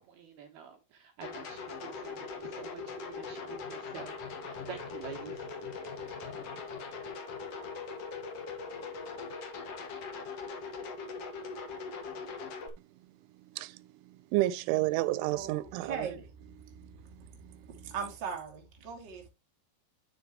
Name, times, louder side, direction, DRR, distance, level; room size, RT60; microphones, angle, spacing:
voice 1, 0.1-4.1 4.4-5.5, right 8 dB, 70° right, 2.5 m, -47 dB
sound 1, 1.2-12.7, left 4 dB, 80° left, 1.3 m, -41 dB
voice 2, 14.3-16.1 16.8-16.9 17.7-17.9, right 17 dB, 90° right, 3.1 m, -30 dB
voice 3, 15.8-16.3 17.8-19.3, right 6 dB, 30° right, 2.2 m, -38 dB
9.8 x 6.9 x 3.0 m
omnidirectional pair, 5.4 m